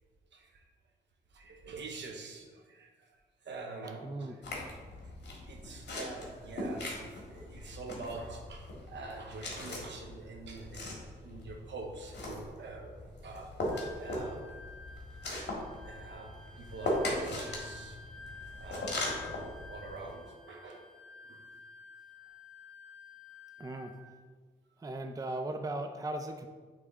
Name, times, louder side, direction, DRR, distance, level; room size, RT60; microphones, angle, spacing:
voice 1, 0.3-0.6 1.3-3.2 3.4-4.4 5.5-10.9 11.2-13.5 14.0-14.4 15.8-18.0 18.6-19.2 19.7-20.9 21.3-21.4, right 3 dB, 75° right, 3 dB, 0.9 m, -45 dB
voice 2, 4.0-4.4 23.6-23.9 24.8-26.5, right 2 dB, 20° right, 6 dB, 0.4 m, -37 dB
sound 1, 4.4-20.1, left 1 dB, 70° left, 1.6 m, -39 dB
Wind instrument woodwind instrument, 13.7-24.1, left 4 dB, 5° right, 1.2 m, -51 dB
8.2 x 3.3 x 3.6 m, 1.4 s
cardioid pair, 90°, 19 cm